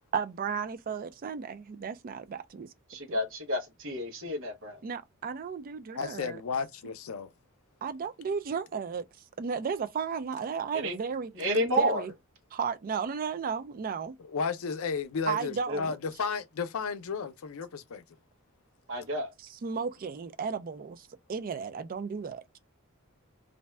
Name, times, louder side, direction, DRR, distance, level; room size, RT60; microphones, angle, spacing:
voice 1, 0.1-2.7 3.1-3.2 4.8-6.4 7.8-9.0 9.4-11.3 11.8-12.1 12.5-14.1 15.3-16.0 19.5-22.4, right 6 dB, 40° right, 0.4 m, -34 dB
voice 2, 2.9-4.8 10.7-10.9 11.4-12.0 15.7-15.8 18.9-19.3, equal, 65° right, 0.9 m, -30 dB
voice 3, 5.9-7.3 14.2-18.0, left 5 dB, 80° left, 0.5 m, -33 dB
2.6 x 2.2 x 3.2 m
head